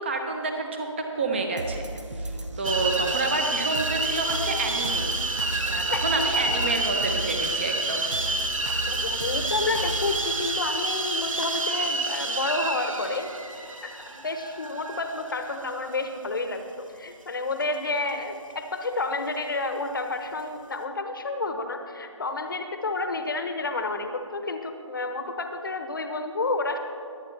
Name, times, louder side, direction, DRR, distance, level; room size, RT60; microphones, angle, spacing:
voice 1, 0.0-1.9 2.2-5.1 5.7-8.1, right 3 dB, 20° right, 4 dB, 0.9 m, -29 dB
sound 1, 1.6-11.6 12.1-12.2, right 2 dB, 65° right, 1.2 m, -35 dB
sound 2, 2.6-16.3, right 2 dB, 85° right, 1.3 m, -29 dB
voice 2, 8.9-13.3 13.8-26.8, left 3 dB, 40° left, 7 dB, 1.0 m, -30 dB
22.0 x 9.0 x 3.3 m, 2.3 s
figure-of-eight pair, 165°, 17 cm